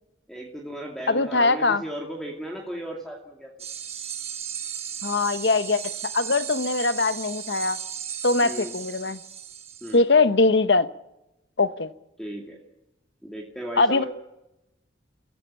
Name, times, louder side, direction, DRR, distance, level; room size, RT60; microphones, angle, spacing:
voice 1, 0.3-3.5 8.4-8.7 9.8-10.0 12.2-12.6 13.2-14.1, equal, ahead, -1 dB, 2.4 m, -35 dB
voice 2, 1.1-1.8 5.0-7.8 8.2-9.2 9.9-10.9 11.6-11.9 13.8-14.0, left 3 dB, 65° left, 12 dB, 1.0 m, -22 dB
sound 1, 3.6-10.0, right 8 dB, 35° right, 1.7 m, -35 dB
29.0 x 15.5 x 7.6 m, 0.93 s
head